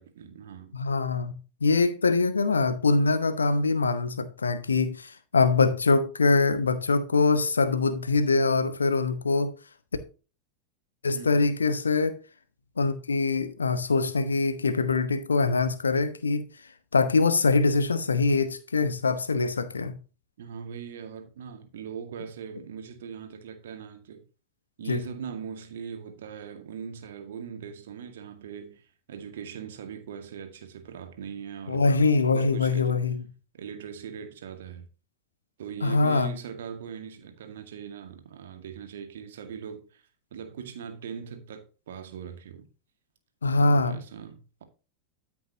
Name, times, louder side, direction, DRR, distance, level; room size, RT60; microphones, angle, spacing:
voice 1, 0.0-0.8 11.1-11.5 20.4-24.2 24.8-31.9 32.3-33.0 33.5-34.8 35.6-40.0 40.3-42.7 43.6-44.6, right 7 dB, 60° right, 2.0 m, -40 dB
voice 2, 0.7-1.3 1.6-9.5 11.0-12.2 12.8-16.4 16.9-19.9 24.9-25.0 31.7-33.2 35.8-36.3 43.4-44.0, left 3 dB, 75° left, 1.1 m, -23 dB
13.5 x 6.0 x 2.9 m
figure-of-eight pair, 90°, 0 cm